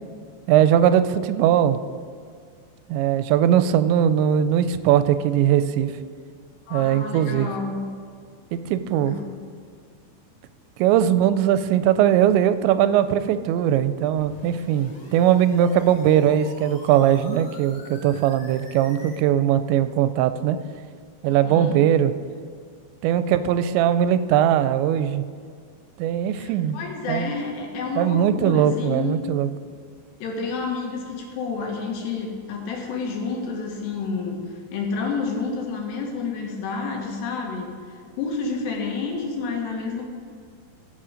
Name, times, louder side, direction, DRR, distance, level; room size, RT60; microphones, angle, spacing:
voice 1, 0.5-1.8 2.9-5.9 6.7-7.5 8.5-9.2 10.8-20.6 21.2-22.1 23.0-25.2 26.0-26.8 27.1-27.3 28.0-29.5, right 10 dB, 85° right, 12 dB, 2.8 m, -20 dB
voice 2, 6.7-7.7 9.0-9.4 21.3-21.8 26.4-29.2 30.2-34.4 34.7-37.7 38.1-40.0, left 4 dB, 75° left, 1 dB, 3.5 m, -29 dB
sound 1, 14.2-19.2, left 2 dB, 50° left, 1.7 m, -46 dB
16.0 x 6.8 x 5.1 m, 2.1 s
omnidirectional pair, 5.1 m